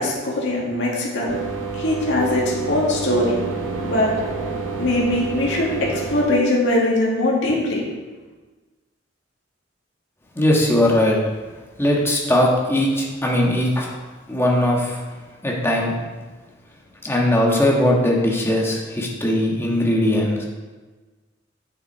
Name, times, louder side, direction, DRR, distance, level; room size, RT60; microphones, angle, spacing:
voice 1, 0.0-1.4 1.7-3.3 3.8-4.1 4.8-7.8, left 1 dB, 65° left, -4 dB, 2.0 m, -21 dB
sound 1, 1.3-6.3, right 4 dB, 90° right, 1.2 m, -29 dB
voice 2, 10.3-11.2 11.8-13.9 14.3-15.0 15.4-16.0 17.0-20.5, left 1 dB, 15° left, -2 dB, 1.5 m, -19 dB
7.9 x 7.2 x 4.5 m, 1.3 s
head